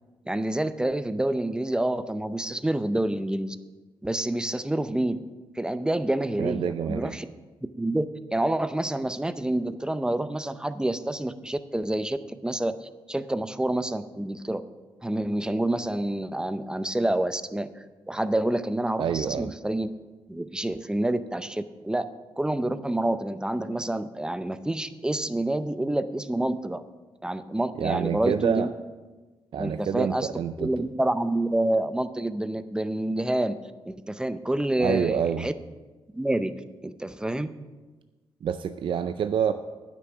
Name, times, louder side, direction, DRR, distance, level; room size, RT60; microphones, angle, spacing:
voice 1, 0.3-3.6 4.0-5.2 5.6-7.3 7.8-12.2 12.4-14.6 15.0-19.9 20.3-22.1 22.4-26.8 27.2-28.7 29.6-30.3 30.6-33.6 33.9-35.5 36.1-36.5 36.8-37.5, right 1 dB, 10° right, 12 dB, 0.6 m, -28 dB
voice 2, 6.4-7.1 19.0-19.5 27.8-28.7 29.5-30.7 34.8-35.5 38.4-39.5, right 8 dB, 60° right, 10 dB, 0.4 m, -27 dB
9.5 x 6.1 x 6.9 m, 1.2 s
cardioid pair, 90°, 10 cm